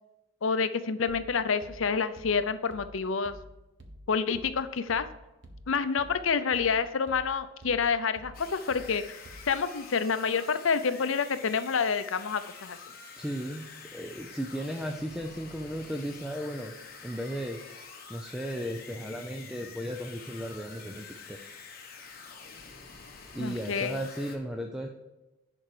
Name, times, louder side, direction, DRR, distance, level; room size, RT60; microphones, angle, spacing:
voice 1, 0.4-3.3 4.1-5.1 5.7-9.2 9.5-12.8 23.4-24.0, left 5 dB, 75° left, 12 dB, 0.6 m, -28 dB
sound 1, 1.1-9.8, equal, 60° right, 1.1 m, -51 dB
sound 2, 8.3-24.4, left 5 dB, 45° left, 1.2 m, -47 dB
voice 2, 13.2-16.7 17.0-17.6 18.1-21.4 23.3-24.9, equal, 5° right, 2 dB, 0.5 m, -35 dB
10.5 x 4.6 x 4.9 m, 1.0 s
head